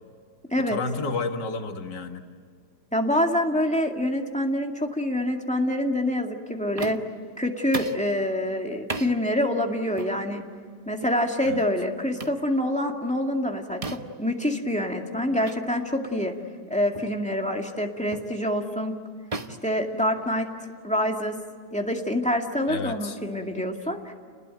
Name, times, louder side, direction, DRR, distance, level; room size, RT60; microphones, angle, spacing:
voice 1, 0.7-2.2 11.5-11.6 22.7-23.2, left 4 dB, 85° left, 5 dB, 2.2 m, -31 dB
voice 2, 2.9-7.0 7.4-10.4 10.9-13.8 14.2-16.3 16.7-18.9 19.6-20.5 20.8-21.4 21.7-24.1, left 1 dB, 5° left, 2 dB, 2.1 m, -26 dB
sound 1, 6.8-7.2 7.7-8.1 8.9-9.1 10.0-10.2 11.0-11.2 12.2-12.4 13.8-14.2 15.4-15.6 16.0-16.2 16.9-17.2 18.1-18.4 19.3-20.5, right 3 dB, 25° right, 0.9 m, -35 dB
29.5 x 20.5 x 9.2 m, 2.1 s
omnidirectional pair, 1.8 m